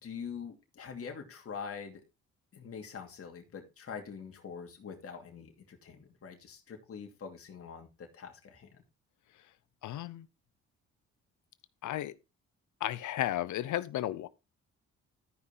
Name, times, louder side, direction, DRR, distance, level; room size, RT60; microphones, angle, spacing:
voice 1, 0.0-2.0 2.5-8.8, left 6 dB, 50° left, 2.7 m, -44 dB
voice 2, 9.8-10.3 11.8-12.1 12.8-14.3, left 13 dB, 75° left, 0.9 m, -34 dB
13.0 x 5.6 x 4.2 m
cardioid pair, 90°, 30 cm